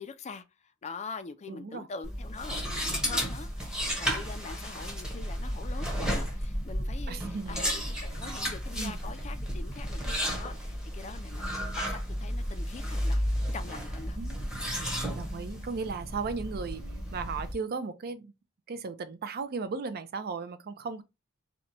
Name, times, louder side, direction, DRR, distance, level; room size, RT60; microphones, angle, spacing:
voice 1, 0.0-13.2 13.5-14.2, left 4 dB, 30° left, 0.4 m, -44 dB
voice 2, 1.5-1.9 7.1-7.6 8.7-9.0 14.1-14.4 14.7-16.8 17.1-18.3 18.7-21.0, right 4 dB, 45° right, 0.4 m, -36 dB
sound 1, 2.0-17.5, equal, 5° right, 0.9 m, -33 dB
2.8 x 2.2 x 4.0 m
head